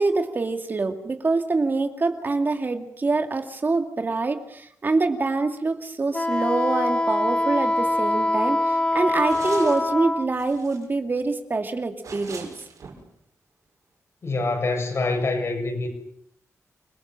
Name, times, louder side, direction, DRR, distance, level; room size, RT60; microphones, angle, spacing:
voice 1, 0.0-12.5, right 3 dB, 35° right, 6 dB, 2.4 m, -25 dB
Wind instrument woodwind instrument, 6.1-10.3, left 1 dB, 15° left, 0.9 m, -23 dB
sound 1, 7.2-7.3 7.6-7.7 8.2-8.3 9.3-9.9 10.2-10.9 12.0-13.0, right 5 dB, 80° right, 6.4 m, -41 dB
voice 2, 14.2-15.9, left 3 dB, 55° left, 4 dB, 7.4 m, -25 dB
28.5 x 20.5 x 7.6 m, 0.69 s
wide cardioid pair, 130°, 6 cm